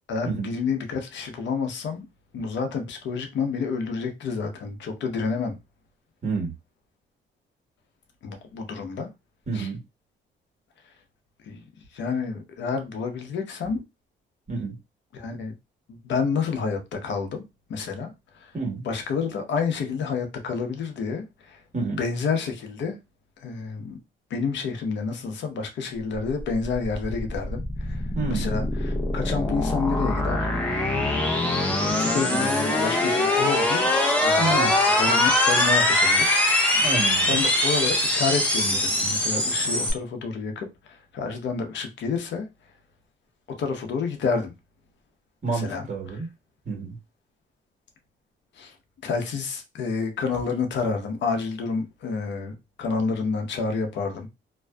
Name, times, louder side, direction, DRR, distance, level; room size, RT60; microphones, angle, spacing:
voice 1, 0.1-2.1 2.3-5.6 8.2-9.1 9.5-9.7 11.4-11.6 11.9-13.8 15.1-15.5 15.9-17.4 17.7-18.5 18.8-21.6 21.9-23.0 23.4-24.0 24.3-30.5 31.3-31.6 32.0-33.9 34.2-36.4 36.6-36.9 37.3-42.5 43.6-44.5 45.5-45.9 46.1-46.2 48.5-48.8 49.0-54.3, left 5 dB, 70° left, 0.8 m, -29 dB
voice 2, 6.2-6.5 9.5-9.8 14.5-14.8 18.5-18.8 21.7-22.0 28.1-28.5 34.4-34.7 36.7-37.4 45.4-46.3 46.6-47.0, right 4 dB, 35° right, 1.2 m, -29 dB
sound 1, 26.5-39.9, left 1 dB, 5° left, 0.7 m, -23 dB
2.6 x 2.2 x 2.2 m
cardioid pair, 90°, 20 cm